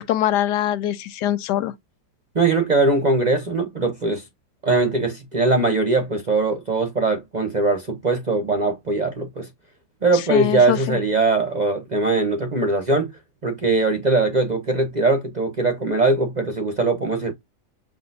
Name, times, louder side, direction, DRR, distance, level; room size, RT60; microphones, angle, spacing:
voice 1, 0.0-1.7 10.3-11.0, left 12 dB, 90° left, 1.2 m, -23 dB
voice 2, 2.3-4.2 4.6-9.5 10.0-13.1 13.4-17.3, right 3 dB, 40° right, 0.6 m, -21 dB
5.9 x 2.5 x 2.6 m
omnidirectional pair, 1.7 m